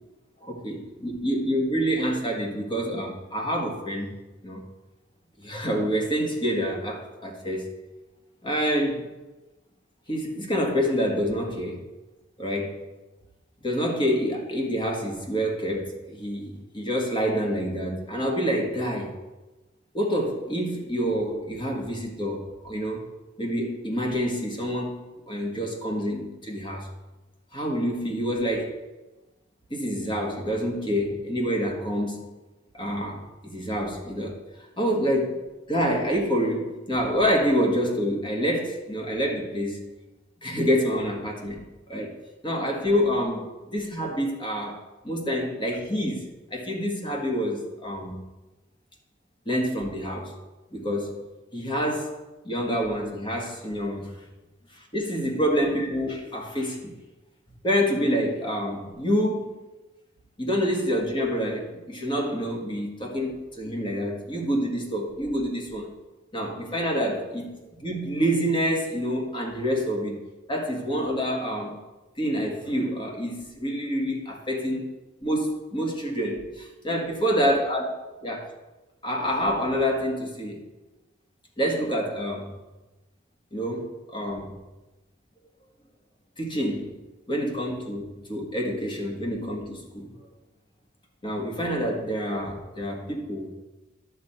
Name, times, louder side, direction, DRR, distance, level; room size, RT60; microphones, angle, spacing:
voice 1, 0.4-4.1 4.4-4.6 5.4-7.7 8.4-9.0 10.1-11.9 12.4-12.8 13.6-19.2 19.9-23.1 23.4-26.9 27.5-28.8 29.7-32.3 32.7-35.4 35.7-39.8 40.4-41.6 41.9-42.1 42.4-48.2 49.4-50.4 50.7-51.2 51.5-52.2 52.4-54.2 54.7-56.9 57.6-59.6 60.4-65.9 66.3-70.2 70.5-71.8 72.2-74.9 75.2-77.8 78.2-78.5 79.0-80.6 81.6-82.5 83.5-84.5 86.4-87.0 87.3-90.1 91.2-93.6, equal, 25° left, 1 dB, 1.7 m, -27 dB
11.0 x 4.4 x 8.1 m, 1.1 s
head